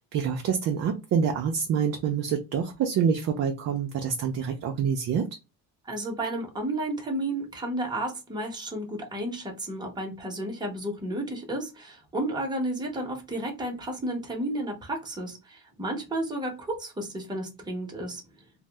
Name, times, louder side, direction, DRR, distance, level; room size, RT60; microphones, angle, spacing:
voice 1, 0.1-5.3, right 7 dB, 45° right, 3 dB, 0.4 m, -26 dB
voice 2, 5.9-18.2, right 1 dB, 10° right, 1 dB, 0.8 m, -32 dB
2.6 x 2.0 x 3.2 m, 0.27 s
cardioid pair, 160°, 36 cm